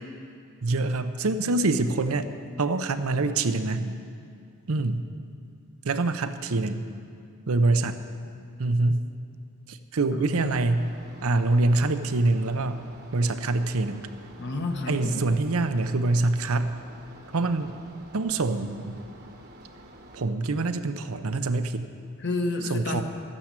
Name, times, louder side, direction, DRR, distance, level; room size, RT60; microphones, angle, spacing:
voice 1, 0.6-2.3 2.6-4.0 4.7-5.0 5.8-6.8 7.5-8.0 8.6-9.1 9.7-10.9 11.2-12.8 13.1-14.1 14.9-16.8 17.3-17.7 18.1-19.0 20.1-21.9 22.7-23.0, right 2 dB, 75° right, 9 dB, 0.7 m, -25 dB
voice 2, 10.1-10.6 14.4-15.3 22.2-23.0, left 2 dB, 50° left, 4 dB, 1.2 m, -30 dB
sound 1, 10.3-20.3, right 1 dB, 45° right, 1.2 m, -49 dB
13.0 x 9.2 x 7.4 m, 2.3 s
head